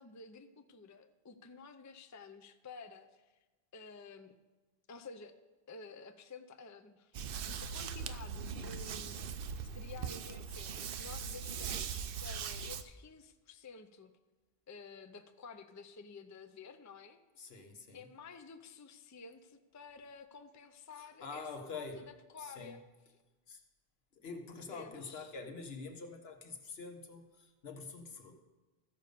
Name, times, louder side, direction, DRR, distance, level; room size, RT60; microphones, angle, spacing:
voice 1, 0.0-3.4 3.7-4.3 4.9-5.4 5.7-14.1 14.7-17.2 17.9-22.9 24.7-25.4, left 4 dB, 25° left, 7 dB, 0.4 m, -52 dB
sound 1, 7.1-12.8, right 6 dB, 65° right, 0.8 m, -40 dB
voice 2, 17.4-18.1 21.0-22.1 22.4-22.8 23.5-23.6 24.2-28.4, left 4 dB, 75° left, 5 dB, 1.3 m, -46 dB
14.0 x 5.2 x 6.7 m, 1.2 s
omnidirectional pair, 1.0 m